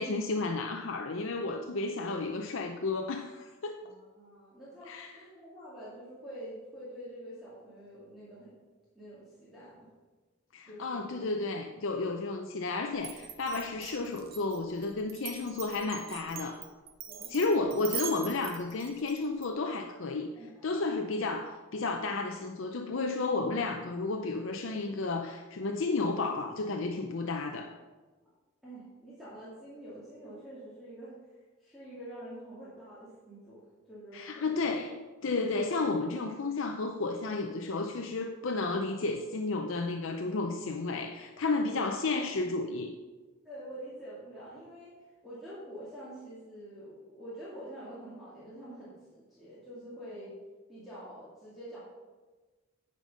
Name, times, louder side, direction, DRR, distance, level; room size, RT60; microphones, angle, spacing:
voice 1, 0.0-3.8 4.9-5.1 10.5-16.6 17.3-20.3 20.6-27.7 34.1-35.0 35.2-42.9, left 3 dB, 65° left, 4 dB, 0.6 m, -32 dB
voice 2, 3.8-8.6 8.9-9.9 10.7-11.2 17.1-17.3 20.3-21.1 28.6-31.2 31.6-33.6 33.9-34.5 41.7-41.9 43.4-44.9 45.2-50.4 50.7-51.8, right 1 dB, ahead, -11 dB, 2.2 m, -46 dB
Glass, 13.0-19.5, right 9 dB, 45° right, 0.8 m, -42 dB
9.7 x 5.3 x 5.3 m, 1.3 s
head